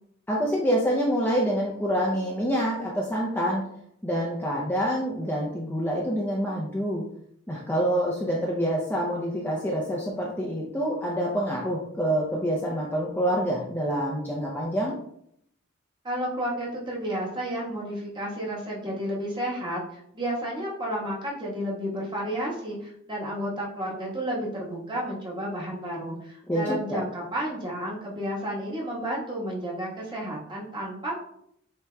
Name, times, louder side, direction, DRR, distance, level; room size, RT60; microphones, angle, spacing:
voice 1, 0.3-3.6 4.0-7.1 7.5-14.9 26.5-27.0, equal, 10° left, -3 dB, 0.5 m, -26 dB
voice 2, 16.0-31.2, equal, 20° right, -5 dB, 1.2 m, -32 dB
8.1 x 2.9 x 2.2 m, 0.71 s
head